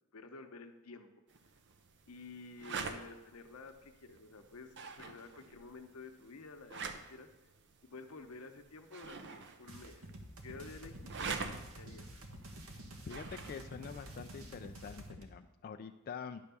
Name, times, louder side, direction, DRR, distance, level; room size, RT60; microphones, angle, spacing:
voice 1, 0.1-1.1 2.1-6.8 7.1-7.3 7.8-10.1 10.4-11.4 11.7-12.2, left 3 dB, 85° left, 7 dB, 0.8 m, -51 dB
sound 1, 1.3-15.1, right 5 dB, 55° right, 0.7 m, -47 dB
sound 2, 9.7-15.2, right 1 dB, 75° right, 1.2 m, -49 dB
voice 2, 13.1-16.4, left 6 dB, 45° left, 7 dB, 0.3 m, -46 dB
10.5 x 3.5 x 6.8 m, 1.0 s
head